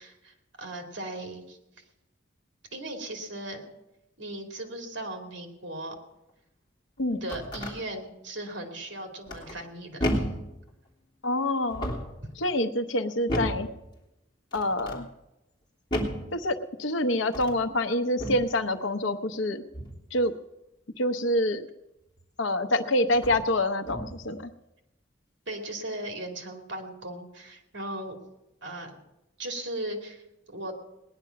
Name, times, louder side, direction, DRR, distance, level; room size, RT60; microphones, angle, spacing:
voice 1, 0.0-1.6 2.7-3.6 4.2-6.0 7.2-10.3 25.5-28.2 28.6-29.0 29.4-30.7, right 1 dB, 70° right, 3 dB, 2.6 m, -37 dB
sound 1, 7.0-7.8 9.3-9.7 10.0-10.5 11.6-12.2 13.3-13.7 14.5-15.0 15.9-16.3 17.2-17.6 18.2-18.5 19.7-20.1 22.2-22.3 23.1-23.5 23.8-24.3, equal, 25° left, 3.1 m, -32 dB
voice 2, 11.2-11.9 12.4-13.7 14.5-15.1 16.3-19.6 20.1-20.3 21.0-21.7 22.4-24.5, left 1 dB, 80° left, 9 dB, 0.9 m, -26 dB
19.5 x 10.5 x 5.8 m, 0.93 s
head